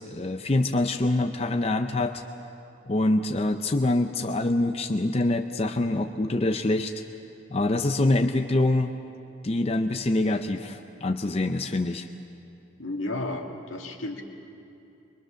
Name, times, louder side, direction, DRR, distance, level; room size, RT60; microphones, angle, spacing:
voice 1, 0.0-2.2 2.9-6.9 7.5-8.9 9.4-12.1, left 2 dB, 30° left, 6 dB, 0.5 m, -25 dB
voice 2, 12.8-14.2, left 2 dB, 80° left, 2 dB, 2.0 m, -32 dB
23.0 x 23.0 x 6.4 m, 2.7 s
head